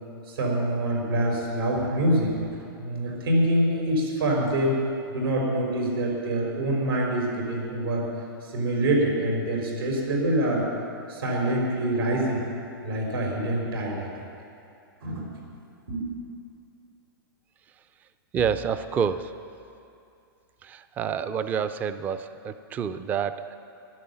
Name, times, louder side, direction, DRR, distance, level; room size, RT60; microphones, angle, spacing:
voice 1, 0.3-2.4 2.8-4.7 5.1-8.0 8.4-10.6 11.1-12.4 12.8-14.1 15.0-15.3 15.9-16.1, right 1 dB, 90° right, -1 dB, 4.8 m, -25 dB
voice 2, 18.3-19.3 20.6-23.6, right 7 dB, 15° right, 12 dB, 0.4 m, -28 dB
15.5 x 11.0 x 7.0 m, 2.6 s
hypercardioid pair, 160°, 12 cm